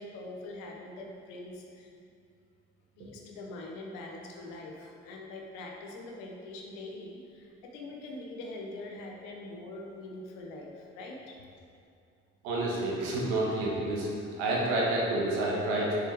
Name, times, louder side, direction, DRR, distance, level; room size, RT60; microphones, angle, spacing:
voice 1, 0.0-1.9 3.0-11.4, left 2 dB, 85° left, 0 dB, 1.0 m, -43 dB
voice 2, 12.4-14.1 14.4-16.0, right 2 dB, 90° right, -4 dB, 1.4 m, -29 dB
7.2 x 6.4 x 3.5 m, 2.6 s
hypercardioid pair, 55°, 31 cm